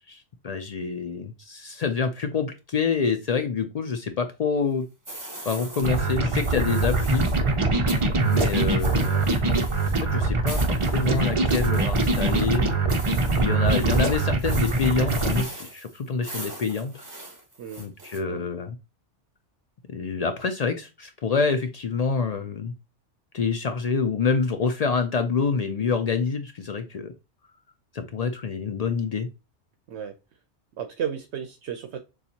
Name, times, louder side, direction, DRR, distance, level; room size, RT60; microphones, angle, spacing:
voice 1, 0.1-4.9 5.4-7.3 8.2-9.2 10.0-12.7 13.3-17.0 17.8-18.8 19.9-22.7 23.3-27.1 27.9-29.3, left 5 dB, 75° left, 7 dB, 0.3 m, -27 dB
sound 1, 5.0-7.5 7.9-18.2, right 1 dB, 15° right, 1.2 m, -40 dB
sound 2, 5.8-15.4, right 3 dB, 35° right, 0.5 m, -23 dB
voice 2, 30.8-32.0, right 8 dB, 70° right, 6 dB, 0.8 m, -33 dB
6.9 x 2.4 x 2.8 m, 0.27 s
omnidirectional pair, 1.2 m